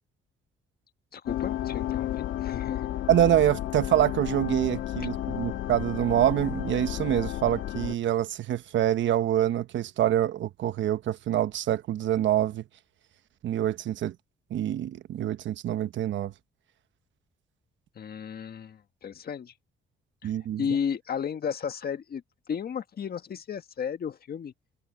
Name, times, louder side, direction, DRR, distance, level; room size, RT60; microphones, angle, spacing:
voice 1, 1.1-2.9 18.0-19.5 20.2-20.3 20.6-22.2 22.5-24.5, left 7 dB, 50° left, 1.6 m, -33 dB
sound 1, 1.2-7.9, left 13 dB, 85° left, 2.7 m, -32 dB
voice 2, 3.1-12.6 13.4-14.1 14.5-16.3 20.2-20.6, right 11 dB, 70° right, 1.1 m, -26 dB
cardioid pair, 90°, 20 cm